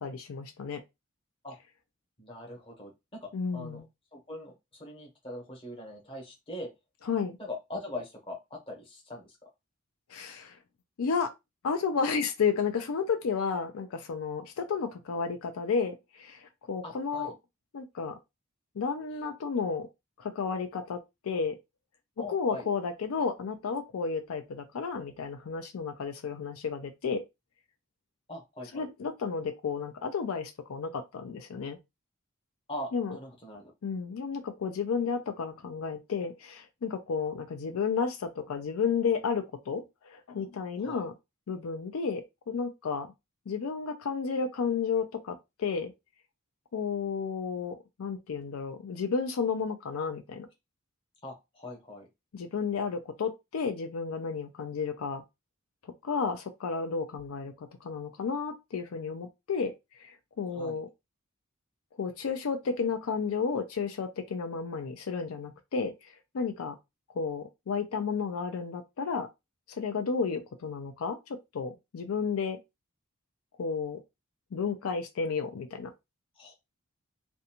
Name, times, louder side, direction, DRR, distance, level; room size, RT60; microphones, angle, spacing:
voice 1, 0.0-0.8 3.3-3.9 7.1-7.4 10.1-10.6 11.0-11.3 11.6-17.3 17.7-18.2 18.8-19.9 20.2-21.6 22.3-27.2 28.7-31.8 32.9-33.2 33.8-41.1 41.5-43.1 43.5-45.9 46.7-50.5 52.3-55.2 56.0-59.7 60.0-60.1 60.4-60.9 62.0-66.8 67.2-69.3 69.7-71.2 71.5-72.6 73.6-74.0 74.5-75.9, left 5 dB, 85° left, 0.4 m, -32 dB
voice 2, 2.2-3.8 4.1-4.5 4.8-6.7 7.4-9.3 16.8-17.3 22.2-22.6 28.3-28.9 32.7-33.7 40.8-41.0 51.2-52.1 60.5-60.8 76.4-76.5, left 1 dB, 25° left, 0.9 m, -41 dB
2.5 x 2.2 x 2.8 m
head